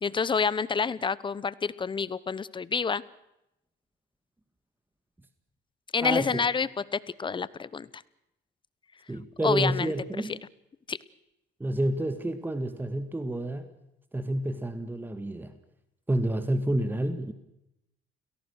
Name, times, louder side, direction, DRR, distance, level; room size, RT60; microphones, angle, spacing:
voice 1, 0.0-3.0 5.9-8.0 9.4-9.9 10.3-10.4 10.9-11.0, left 5 dB, 25° left, 19 dB, 0.9 m, -28 dB
voice 2, 6.0-6.4 9.1-10.3 11.6-13.6 14.1-15.5 16.1-17.3, right 1 dB, 10° right, 9 dB, 1.9 m, -29 dB
30.0 x 17.5 x 6.5 m, 0.84 s
cardioid pair, 110°, 18 cm